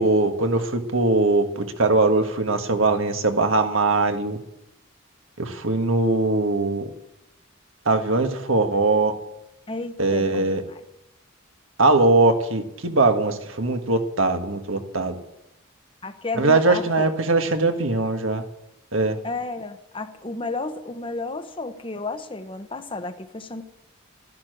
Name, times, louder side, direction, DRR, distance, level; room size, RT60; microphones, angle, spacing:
voice 1, 0.0-4.4 5.4-6.9 7.8-9.1 10.0-10.6 11.8-15.2 16.4-18.4 18.9-19.2, right 2 dB, 75° right, 6 dB, 1.6 m, -21 dB
voice 2, 9.7-10.8 16.0-16.9 19.2-23.6, left 3 dB, 25° left, 9 dB, 0.9 m, -32 dB
13.0 x 11.5 x 7.9 m, 0.87 s
head